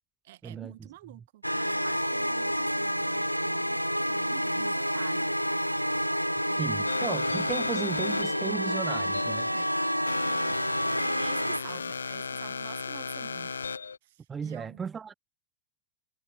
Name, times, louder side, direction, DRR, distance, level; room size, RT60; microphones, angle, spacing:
voice 1, 0.2-3.8 4.1-5.3 6.5-7.0 9.5-9.8 10.2-10.6 10.9-13.5 14.0-14.8, right 16 dB, 55° right, 1.1 m, -48 dB
sound 1, 1.4-11.6, equal, 90° right, 0.5 m, -29 dB
voice 2, 6.6-9.5 14.3-15.1, right 6 dB, 20° right, 0.7 m, -35 dB
sound 2, 6.9-14.0, left 5 dB, 75° left, 0.7 m, -36 dB
figure-of-eight pair, 90°, 0 cm